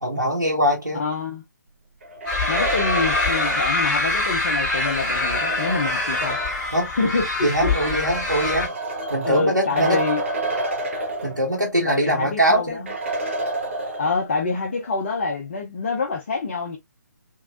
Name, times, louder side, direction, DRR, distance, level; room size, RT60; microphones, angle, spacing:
voice 1, 0.0-1.0 6.7-6.9 7.4-8.7 9.1-10.0 11.2-12.8, right 1 dB, 85° right, 1.2 m, -22 dB
voice 2, 1.0-1.4 2.5-6.4 7.0-7.8 9.2-10.2 11.8-12.9 14.0-16.8, left 4 dB, 35° left, 0.8 m, -26 dB
sound 1, 2.0-6.7 7.6-11.8 12.1-12.2 12.9-14.4, right 2 dB, 40° right, 1.0 m, -30 dB
sound 2, 2.3-8.7, left 2 dB, 5° left, 2.1 m, -24 dB
3.4 x 3.0 x 2.4 m
figure-of-eight pair, 140°, 10 cm